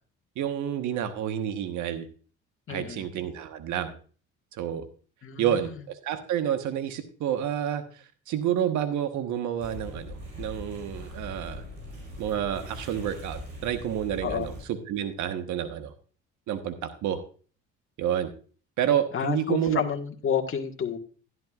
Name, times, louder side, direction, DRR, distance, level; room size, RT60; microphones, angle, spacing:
voice 1, 0.4-2.1 2.7-4.0 4.5-4.8 5.4-11.6 12.2-15.9 16.5-17.2 18.0-18.3 18.8-19.8, right 10 dB, 70° right, 8 dB, 1.3 m, -29 dB
voice 2, 2.7-3.0 5.2-5.7 14.2-14.5 19.1-21.0, left 8 dB, 45° left, 2 dB, 1.7 m, -30 dB
sound 1, 9.6-14.6, equal, 90° right, 4.7 m, -41 dB
11.5 x 11.0 x 2.4 m, 0.40 s
supercardioid pair, 80°, 30 cm